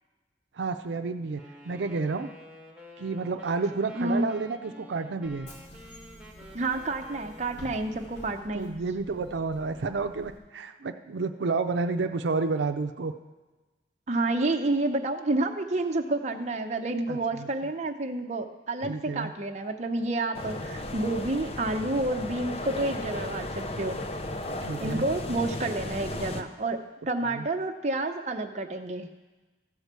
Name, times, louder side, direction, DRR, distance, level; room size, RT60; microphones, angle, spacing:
voice 1, 0.5-2.3 3.0-5.5 8.5-13.1 17.1-17.7 18.8-19.3 24.6-25.0 27.3-27.5, right 4 dB, 85° right, 7 dB, 0.5 m, -30 dB
Wind instrument woodwind instrument, 1.4-8.3, left 1 dB, 5° right, 1.3 m, -50 dB
voice 2, 4.0-4.3 6.5-8.8 14.1-24.0 24.8-29.1, right 2 dB, 40° right, 4 dB, 0.7 m, -29 dB
Bus / Engine, 5.2-10.4, equal, 80° left, 2.5 m, -49 dB
sound 1, 20.3-26.4, left 1 dB, 35° left, 0.6 m, -35 dB
14.5 x 4.8 x 6.7 m, 1.2 s
head